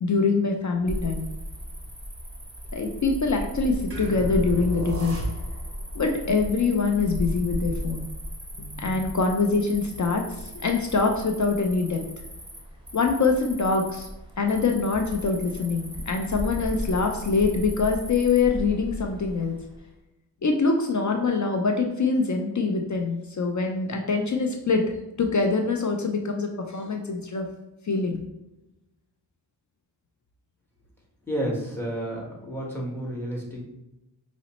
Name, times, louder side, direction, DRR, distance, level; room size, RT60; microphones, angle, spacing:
voice 1, 0.0-1.3 2.7-5.2 5.9-8.0 8.6-10.2 10.5-12.0 12.9-14.1 14.4-19.6 20.4-24.8 25.2-27.5 27.9-28.2, left 4 dB, 40° left, 3 dB, 0.5 m, -24 dB
Cricket, 0.9-19.8, equal, 10° right, 1.0 m, -36 dB
sound 1, 3.9-5.8, right 2 dB, 30° right, 1.3 m, -32 dB
voice 2, 31.3-33.6, right 1 dB, 5° left, -3 dB, 1.3 m, -31 dB
4.9 x 2.0 x 3.0 m, 0.92 s
cardioid pair, 60°, 44 cm